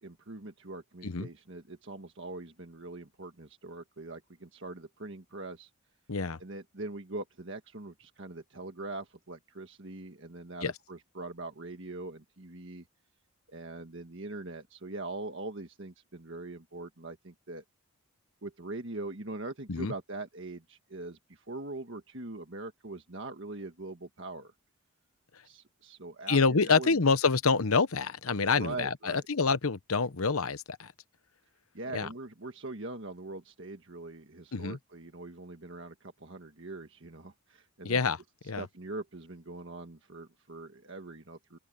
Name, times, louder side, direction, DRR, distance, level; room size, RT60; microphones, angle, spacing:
voice 1, 0.0-5.7 6.4-12.8 13.5-17.6 18.4-24.5 25.4-26.9 28.5-29.2 31.7-38.0 38.6-41.6, right 2 dB, 55° right, 1.6 m, -42 dB
voice 2, 6.1-6.4 10.6-10.7 19.7-19.9 25.3-25.4 26.3-30.9 31.9-32.1 34.5-34.8 37.8-38.2 38.4-38.7, left 4 dB, 80° left, 1.0 m, -27 dB
open air
head